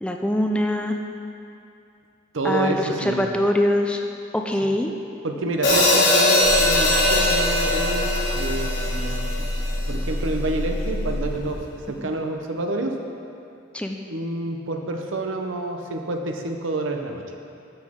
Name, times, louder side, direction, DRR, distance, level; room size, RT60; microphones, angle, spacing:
voice 1, 0.0-1.0 2.4-4.0 4.3-4.9 13.7-14.0, left 1 dB, 5° left, 3 dB, 0.3 m, -23 dB
voice 2, 2.3-3.2 5.2-9.5 9.9-13.0 14.1-17.2, right 2 dB, 80° right, 4 dB, 0.8 m, -28 dB
Hi-hat, 5.6-9.8, left 1 dB, 65° left, 1.6 m, -20 dB
sound 1, 6.4-11.5, left 1 dB, 80° left, 1.4 m, -28 dB
12.5 x 6.3 x 3.7 m, 2.6 s
head